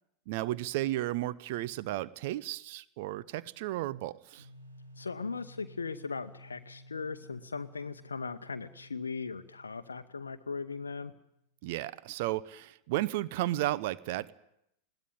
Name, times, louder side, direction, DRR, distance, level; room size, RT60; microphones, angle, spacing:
voice 1, 0.3-4.5 11.6-14.3, right 16 dB, 50° right, 17 dB, 0.8 m, -33 dB
sound 1, 4.4-11.2, equal, 80° right, 4.6 m, -54 dB
voice 2, 5.0-11.1, left 4 dB, 75° left, 8 dB, 0.8 m, -38 dB
21.0 x 17.0 x 9.0 m, 0.78 s
figure-of-eight pair, 90°, 0 cm